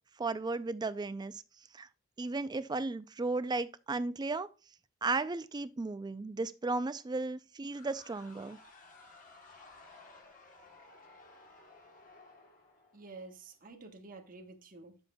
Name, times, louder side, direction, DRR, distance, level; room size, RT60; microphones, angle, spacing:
voice 1, 0.2-1.4 1.7-1.9 2.2-4.5 5.0-8.6, right 3 dB, 20° right, 0.4 m, -35 dB
sound 1, 7.7-13.5, left 3 dB, 40° left, 1.2 m, -57 dB
voice 2, 12.9-15.0, right 3 dB, 40° right, 1.2 m, -50 dB
9.7 x 7.0 x 2.3 m
head